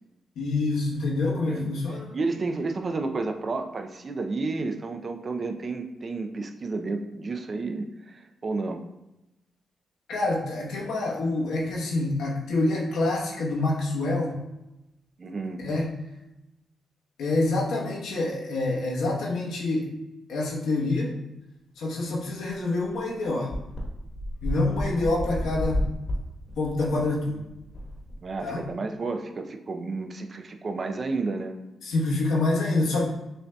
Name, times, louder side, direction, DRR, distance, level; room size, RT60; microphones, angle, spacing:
voice 1, 0.4-2.1 10.1-14.4 15.6-15.9 17.2-19.9 20.3-21.2 21.8-23.5 24.4-25.8 26.6-27.4 28.4-28.6 31.8-33.0, left 2 dB, 90° left, -3 dB, 1.0 m, -26 dB
voice 2, 2.1-8.8 15.2-15.6 28.2-31.6, right 3 dB, 40° right, 5 dB, 0.4 m, -31 dB
sound 1, 22.9-23.0 23.5-28.7, left 1 dB, 50° left, 1.1 m, -32 dB
6.5 x 2.6 x 2.2 m, 0.93 s
cardioid pair, 90°, 0 cm